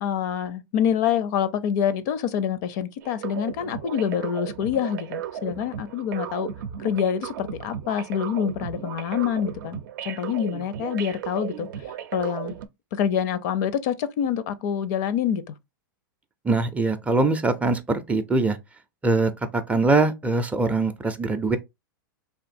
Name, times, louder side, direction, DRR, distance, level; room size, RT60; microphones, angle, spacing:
voice 1, 0.0-6.5 6.8-9.8 10.0-11.7 12.1-12.5 12.9-15.5, left 8 dB, 55° left, 0.5 m, -26 dB
sound 1, 3.0-12.7, right 9 dB, 65° right, 0.5 m, -35 dB
voice 2, 16.4-18.6 19.0-21.6, right 3 dB, 10° right, 0.4 m, -22 dB
3.5 x 2.6 x 2.5 m
hypercardioid pair, 125°, 11 cm